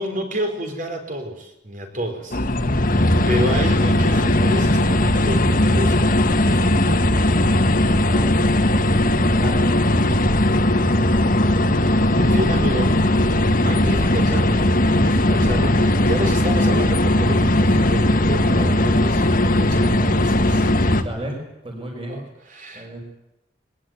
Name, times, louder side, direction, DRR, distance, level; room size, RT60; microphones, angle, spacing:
voice 1, 0.0-2.4 2.9-7.3 11.3-13.0 13.6-20.7 22.1-23.0, equal, 45° right, 5 dB, 4.5 m, -30 dB
sound 1, 2.3-21.0, left 1 dB, 50° left, 1.8 m, -18 dB
voice 2, 2.9-3.3 8.1-8.4 9.3-9.8 10.8-11.4 14.0-14.2 21.0-22.2 22.7-23.0, right 1 dB, 30° right, 1 dB, 6.1 m, -34 dB
22.0 x 20.5 x 9.4 m, 0.87 s
head